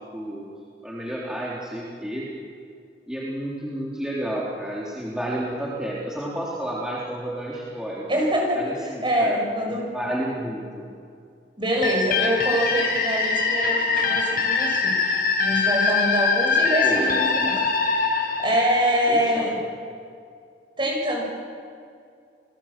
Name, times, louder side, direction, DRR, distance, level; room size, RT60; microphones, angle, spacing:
voice 1, 0.1-0.5 0.8-2.3 3.1-8.1 8.5-9.4 9.9-10.9 16.8-17.1 19.1-19.6, right 1 dB, 5° right, -6 dB, 3.6 m, -31 dB
voice 2, 8.1-9.9 11.6-15.0 15.4-19.6 20.8-21.2, equal, 30° right, 0 dB, 7.8 m, -25 dB
sound 1, 11.8-19.4, left 4 dB, 55° left, 6.3 m, -23 dB
30.0 x 21.5 x 7.5 m, 2.3 s
head